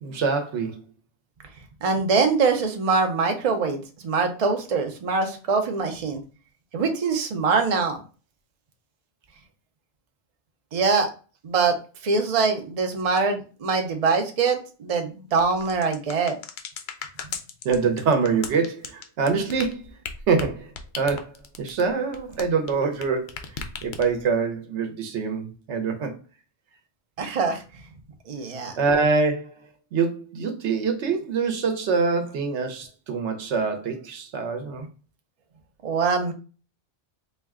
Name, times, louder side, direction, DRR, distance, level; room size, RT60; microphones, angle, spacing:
voice 1, 0.0-0.8 17.6-19.9 20.3-26.2 28.8-29.6 29.9-34.9, right 5 dB, 80° right, 1.0 m, -25 dB
voice 2, 1.8-6.2 6.7-8.0 10.7-11.1 11.4-11.8 12.0-16.4 27.2-27.6 28.3-28.7 35.8-36.3, right 4 dB, 40° right, 0.6 m, -23 dB
sound 1, 15.3-23.0 23.3-24.3, left 6 dB, 60° left, 0.6 m, -36 dB
4.1 x 2.2 x 3.5 m
omnidirectional pair, 1.2 m